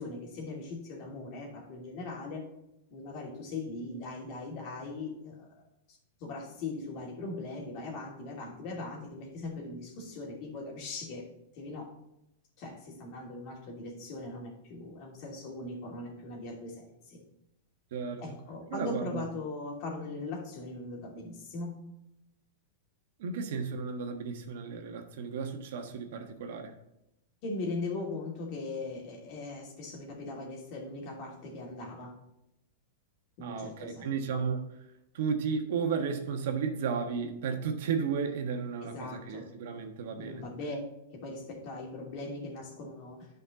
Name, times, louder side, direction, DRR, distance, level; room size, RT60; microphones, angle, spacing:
voice 1, 0.0-2.5 2.9-5.5 6.2-11.2 11.6-11.9 12.6-17.2 18.2-21.8 27.4-32.1 33.4-34.2 38.8-39.5 40.2-40.8 41.1-43.3, left 2 dB, 45° left, -1 dB, 2.8 m, -40 dB
voice 2, 17.9-18.2 18.7-19.2 23.2-26.7 33.4-34.6 35.1-40.4, right 6 dB, 65° right, 5 dB, 1.3 m, -33 dB
10.0 x 5.3 x 4.0 m, 0.85 s
hypercardioid pair, 130°, 0 cm